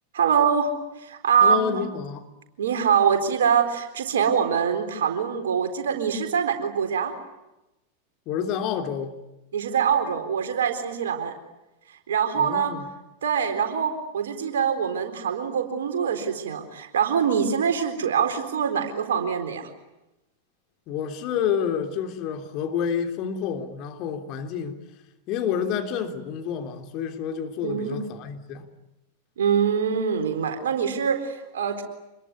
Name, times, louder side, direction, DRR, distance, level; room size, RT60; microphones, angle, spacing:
voice 1, 0.1-0.7 1.0-1.8 2.6-7.1 9.5-11.4 12.1-12.7 13.2-19.7 27.6-28.0 29.4-31.8, right 7 dB, 60° right, 4.1 m, -24 dB
voice 2, 1.4-2.3 8.2-9.2 12.3-12.8 20.9-24.8 25.3-28.7, left 8 dB, 40° left, 3.4 m, -29 dB
27.0 x 22.0 x 9.6 m
figure-of-eight pair, 90°, 0 cm